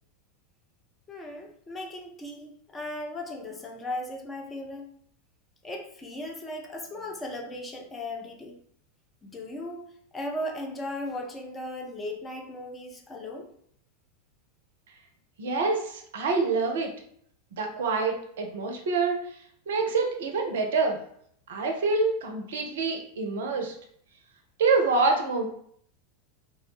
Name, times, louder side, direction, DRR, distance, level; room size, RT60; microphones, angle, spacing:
voice 1, 1.1-4.8 5.6-8.6 9.2-9.9 10.1-13.5, left 1 dB, 15° left, 1 dB, 0.4 m, -37 dB
voice 2, 15.4-16.9 17.6-19.3 19.7-21.0 21.5-23.7 24.6-25.5, right 4 dB, 60° right, 3 dB, 0.4 m, -26 dB
2.2 x 2.1 x 2.9 m, 0.65 s
figure-of-eight pair, 90°, 0 cm